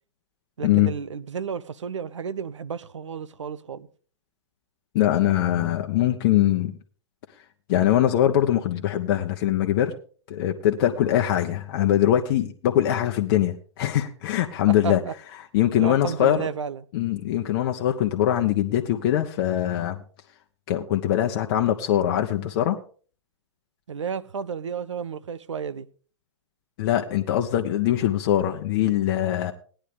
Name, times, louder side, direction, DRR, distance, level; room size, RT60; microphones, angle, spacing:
voice 1, 0.6-3.9 14.8-15.1 15.8-16.8 22.4-22.5 23.9-25.9, right 6 dB, 75° right, 0.7 m, -32 dB
voice 2, 4.9-6.8 7.7-9.9 10.3-15.0 15.5-16.5 16.9-20.0 20.7-22.8 26.8-29.5, left 12 dB, 45° left, 0.9 m, -22 dB
17.0 x 10.0 x 3.7 m
hypercardioid pair, 115°, 15 cm